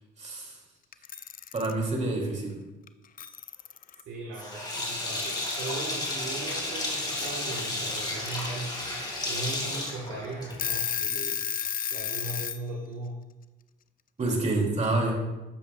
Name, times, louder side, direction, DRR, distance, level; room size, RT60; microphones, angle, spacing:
voice 1, 0.2-0.6 1.5-2.5 14.2-15.2, right 2 dB, 35° right, 1 dB, 2.4 m, -27 dB
Alarm / Clock, 0.9-1.7 2.9-3.0 3.2-4.0 5.1-5.8 7.2-7.3 8.0-8.5 8.9-9.0 9.4-9.5 10.1-10.2 10.4-12.6, left 8 dB, 45° left, 0.4 m, -32 dB
voice 2, 4.0-8.8 9.3-11.5 11.9-13.2 14.2-14.4 14.7-14.9, right 2 dB, 90° right, -2 dB, 1.4 m, -38 dB
Sink (filling or washing), 4.4-10.8, left 2 dB, 20° left, 2.4 m, -33 dB
12.0 x 7.4 x 2.3 m, 1.1 s
cardioid pair, 90°, 20 cm